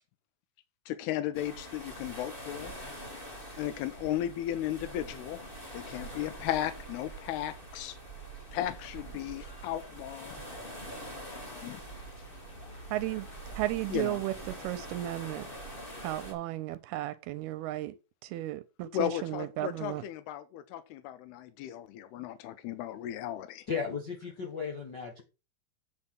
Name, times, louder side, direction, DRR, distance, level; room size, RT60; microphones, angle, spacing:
voice 1, 0.9-2.7 3.6-5.4 5.7-8.0 8.5-10.4 11.3-11.8 13.9-14.2 18.9-23.7, left 12 dB, 90° left, 2.8 m, -35 dB
sound 1, 1.3-16.3, right 1 dB, 15° left, 2.1 m, -45 dB
sound 2, 4.4-15.6, right 1 dB, 35° left, 3.9 m, -55 dB
voice 2, 12.9-13.3 13.6-14.3 14.6-15.5 16.0-17.9 18.2-20.0, right 15 dB, 80° right, 2.5 m, -34 dB
voice 3, 23.7-25.2, left 6 dB, 60° left, 1.1 m, -35 dB
8.6 x 6.0 x 5.8 m
omnidirectional pair, 4.6 m